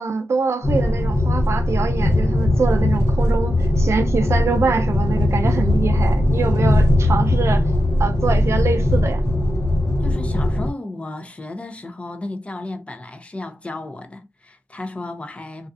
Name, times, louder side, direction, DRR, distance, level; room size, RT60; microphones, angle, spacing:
voice 1, 0.0-7.7 8.0-9.2, right 5 dB, 60° right, 0.5 m, -24 dB
sound 1, 0.6-10.7, left 1 dB, 55° left, 1.0 m, -19 dB
voice 2, 10.0-15.7, left 2 dB, 25° left, 0.5 m, -33 dB
2.4 x 2.4 x 2.4 m
wide cardioid pair, 105°, 5 cm